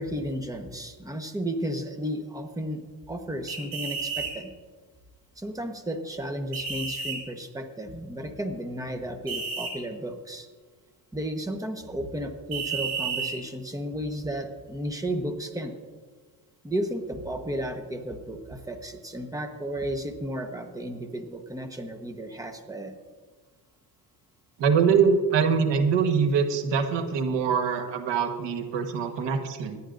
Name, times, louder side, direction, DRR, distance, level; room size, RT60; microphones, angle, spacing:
voice 1, 0.0-2.8 3.1-4.5 5.4-10.5 11.1-15.7 16.6-22.9, equal, 10° right, 6 dB, 1.1 m, -33 dB
sound 1, 3.5-4.3 6.5-7.2 9.3-9.7 12.5-13.3, right 5 dB, 60° right, 4.0 m, -31 dB
voice 2, 24.6-29.8, right 6 dB, 75° right, 7 dB, 1.4 m, -24 dB
24.5 x 10.0 x 2.6 m, 1.5 s
cardioid pair, 110°, 43 cm